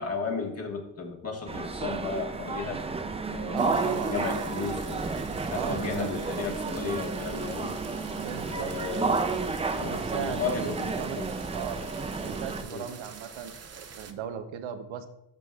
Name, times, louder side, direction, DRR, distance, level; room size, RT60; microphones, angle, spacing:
voice 1, 0.0-2.8 3.3-5.1 5.5-7.8 8.5-9.2 9.8-11.3 12.7-12.9, left 4 dB, 30° left, 1 dB, 1.4 m, -34 dB
sound 1, 1.5-12.6, right 3 dB, 15° right, 0.3 m, -32 dB
voice 2, 3.5-4.5 5.5-6.1 8.1-9.1 9.8-11.2 11.5-11.8 12.2-15.1, right 9 dB, 75° right, 8 dB, 0.8 m, -37 dB
sound 2, 3.6-14.1, right 6 dB, 35° right, 0.7 m, -47 dB
12.0 x 6.1 x 2.3 m, 0.81 s
cardioid pair, 125°, 46 cm